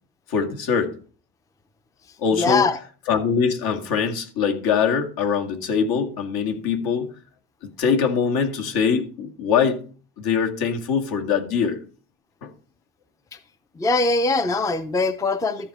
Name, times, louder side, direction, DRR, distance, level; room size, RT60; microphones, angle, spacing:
voice 1, 0.3-0.9 2.2-2.6 3.1-7.1 7.6-9.8 10.2-11.8 12.4-12.5, left 6 dB, 65° left, 2.1 m, -23 dB
voice 2, 2.3-2.8 13.8-15.7, left 3 dB, 10° left, 0.5 m, -22 dB
13.0 x 4.4 x 6.7 m
cardioid pair, 130°, 39 cm